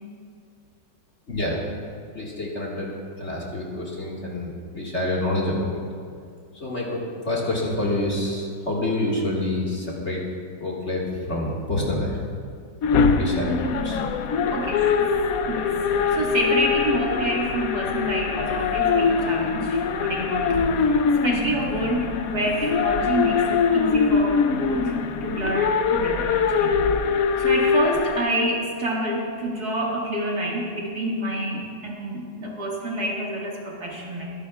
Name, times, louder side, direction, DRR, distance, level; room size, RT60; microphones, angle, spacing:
voice 1, 1.3-1.6 2.1-5.7 6.5-10.2 10.6-12.2 13.2-14.0, left 1 dB, 35° left, -4 dB, 2.0 m, -27 dB
sound 1, 12.8-28.2, left 5 dB, 65° left, 0.9 m, -23 dB
voice 2, 14.5-14.9 15.5-15.8 16.1-25.0 25.2-26.7 27.1-34.3, right 1 dB, 55° right, -3 dB, 2.4 m, -28 dB
24.5 x 11.5 x 2.4 m, 2.2 s
omnidirectional pair, 2.1 m